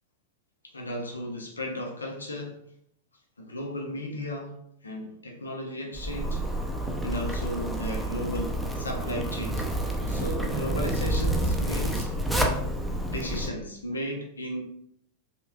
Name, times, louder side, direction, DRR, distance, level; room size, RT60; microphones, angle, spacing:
voice 1, 0.7-2.6 3.4-4.5 4.8-6.4 7.0-9.7 10.1-12.6 13.1-14.6, left 1 dB, 75° left, 2 dB, 0.7 m, -35 dB
Zipper (clothing), 5.9-13.5, right 1 dB, ahead, 0.5 m, -29 dB
5.6 x 3.0 x 2.3 m, 0.71 s
figure-of-eight pair, 90°, 0 cm